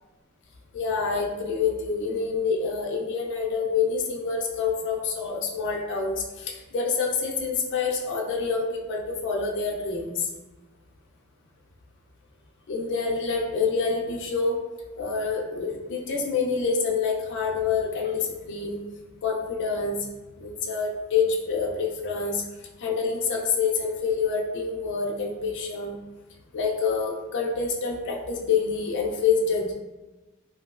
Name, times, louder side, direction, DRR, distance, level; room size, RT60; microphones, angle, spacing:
voice 1, 0.7-10.3 12.7-14.6 15.0-18.8 19.2-20.0 20.4-22.4 22.8-26.0 26.5-29.7, left 5 dB, 55° left, 0 dB, 0.4 m, -27 dB
2.9 x 2.7 x 2.3 m, 1.1 s
head